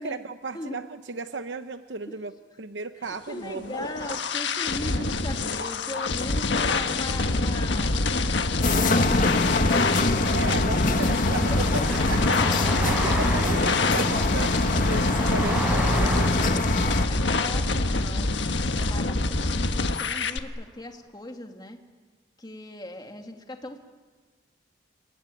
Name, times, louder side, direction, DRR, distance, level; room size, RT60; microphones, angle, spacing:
voice 1, 0.0-2.3 2.6-3.9 5.0-5.1 10.3-16.6, right 4 dB, 85° right, 9 dB, 0.9 m, -35 dB
voice 2, 3.1-9.9 11.5-12.2 12.7-12.8 16.8-21.8 22.4-23.8, left 1 dB, 25° left, 4 dB, 2.3 m, -39 dB
sound 1, 3.4-20.4, left 3 dB, 85° left, 1.5 m, -26 dB
Car passing by, 8.2-19.6, equal, 5° right, 7.0 m, -34 dB
sound 2, 8.6-17.1, left 2 dB, 45° left, 1.5 m, -25 dB
29.5 x 21.5 x 9.1 m, 1.4 s
head